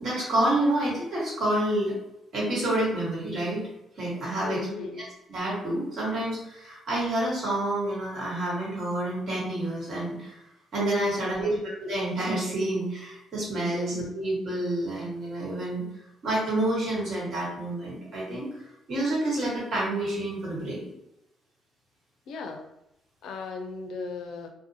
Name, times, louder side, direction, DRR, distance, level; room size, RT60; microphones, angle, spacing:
voice 1, 0.0-1.9 2.3-3.6 4.0-10.4 10.7-15.8 16.2-18.6 18.9-20.9, right 1 dB, 65° right, -5 dB, 1.3 m, -28 dB
voice 2, 4.4-5.1 11.1-11.6 13.7-13.9 22.3-22.7 23.2-24.5, left 4 dB, 80° left, 4 dB, 0.4 m, -37 dB
2.6 x 2.1 x 2.7 m, 0.90 s
cardioid pair, 90°, 0 cm